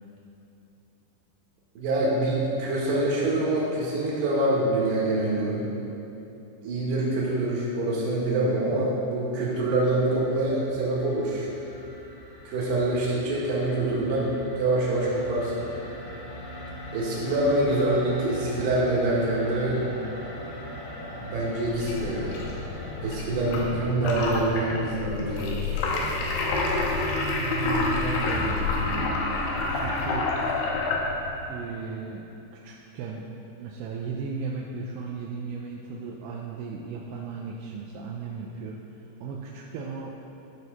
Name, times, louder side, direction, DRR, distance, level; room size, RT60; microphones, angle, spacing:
voice 1, 1.8-5.7 6.6-11.5 12.5-15.7 16.9-19.9 21.1-22.4 23.0-25.8, right 2 dB, 65° right, -6 dB, 3.5 m, -25 dB
sound 1, 9.6-23.7, equal, 65° left, 2.2 m, -41 dB
sound 2, 21.7-31.5, left 3 dB, 80° left, 2.1 m, -28 dB
voice 2, 27.3-29.3 29.7-30.3 31.5-33.3 33.6-38.8 39.2-40.1, right 4 dB, 85° right, -2 dB, 3.1 m, -35 dB
14.5 x 6.3 x 4.0 m, 3.0 s
omnidirectional pair, 5.6 m